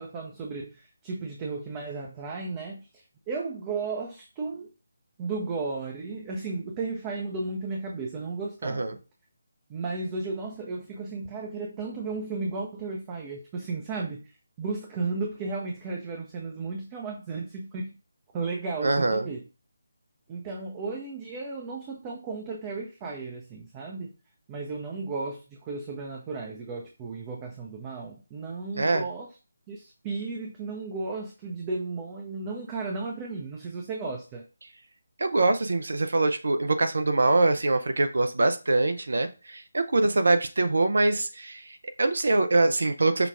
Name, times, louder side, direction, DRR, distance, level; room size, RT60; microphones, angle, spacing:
voice 1, 0.0-4.7 5.2-9.0 9.7-14.3 14.6-18.0 18.3-19.4 20.3-24.1 24.5-29.3 29.7-34.4, right 3 dB, 20° right, 0 dB, 0.6 m, -34 dB
voice 2, 8.6-8.9 18.8-19.3 28.8-29.1 35.2-43.3, right 2 dB, 65° right, 8 dB, 0.6 m, -24 dB
5.8 x 2.4 x 3.5 m, 0.31 s
figure-of-eight pair, 150°, 0 cm